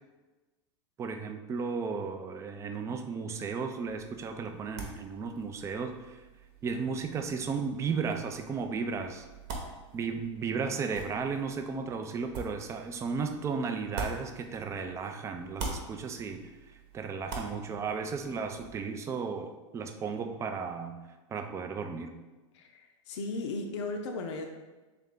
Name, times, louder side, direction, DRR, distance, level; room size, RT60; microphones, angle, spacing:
voice 1, 1.0-6.2 6.6-9.3 9.9-21.0 21.3-22.2, right 5 dB, 20° right, 6 dB, 0.3 m, -34 dB
sound 1, 3.9-15.0 15.3-18.8, right 3 dB, 55° right, 0.9 m, -45 dB
voice 2, 22.5-24.5, left 3 dB, 65° left, 3 dB, 0.6 m, -36 dB
3.3 x 3.3 x 3.7 m, 1.2 s
hypercardioid pair, 115°, 16 cm